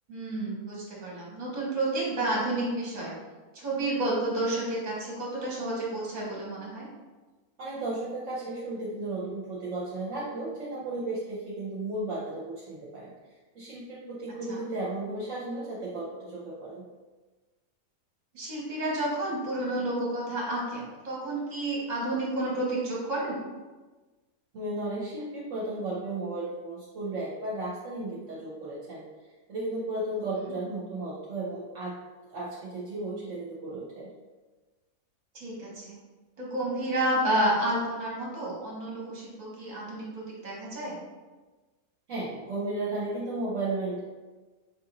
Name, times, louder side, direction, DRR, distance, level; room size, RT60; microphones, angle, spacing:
voice 1, 0.1-3.1 3.5-6.9 14.5-14.6 18.3-23.4 30.3-30.5 35.3-36.0 36.4-41.0, right 1 dB, 30° right, -5 dB, 1.2 m, -30 dB
voice 2, 7.6-13.1 13.5-16.8 24.5-29.0 29.5-31.9 32.3-34.1 42.1-44.0, right 2 dB, 65° right, -6 dB, 1.0 m, -34 dB
5.0 x 2.5 x 2.9 m, 1.3 s
omnidirectional pair, 1.5 m